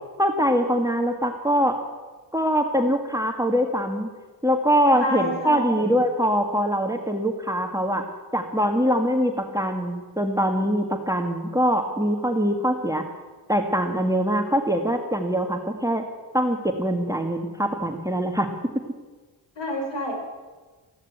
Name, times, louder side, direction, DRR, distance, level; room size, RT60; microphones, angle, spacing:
voice 1, 0.2-1.8 2.3-4.1 4.4-8.0 8.3-13.0 13.5-16.1 16.3-18.5, equal, 5° right, 5 dB, 1.8 m, -23 dB
voice 2, 5.0-6.0 19.6-20.2, equal, 65° left, 2 dB, 5.1 m, -29 dB
15.5 x 11.5 x 8.1 m, 1.3 s
cardioid pair, 65°, 46 cm